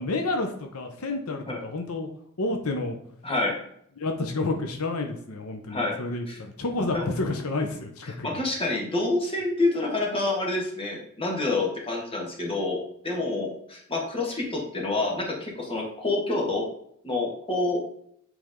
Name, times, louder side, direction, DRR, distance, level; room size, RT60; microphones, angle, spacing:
voice 1, 0.0-2.1 2.4-3.0 4.0-8.4, left 2 dB, 80° left, 4 dB, 0.8 m, -30 dB
voice 2, 3.2-3.6 5.7-5.9 6.3-6.4 6.9-7.1 8.2-16.7 17.0-17.8, left 2 dB, 25° left, -1 dB, 1.6 m, -27 dB
7.9 x 3.5 x 3.7 m, 0.68 s
head